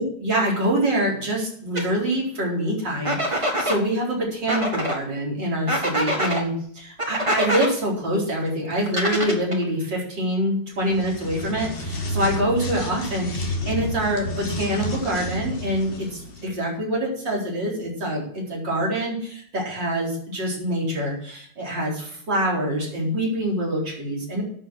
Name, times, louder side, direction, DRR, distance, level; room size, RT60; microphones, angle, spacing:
voice 1, 0.0-24.4, right 1 dB, 70° right, -3 dB, 5.0 m, -25 dB
sound 1, 1.8-1.9 3.0-3.8 4.5-5.0 5.7-6.4 7.0-7.7 8.9-9.6, equal, 15° right, 1.8 m, -24 dB
sound 2, 10.8-16.5, left 1 dB, 35° left, 1.3 m, -30 dB
10.5 x 7.3 x 7.8 m, 0.62 s
omnidirectional pair, 2.0 m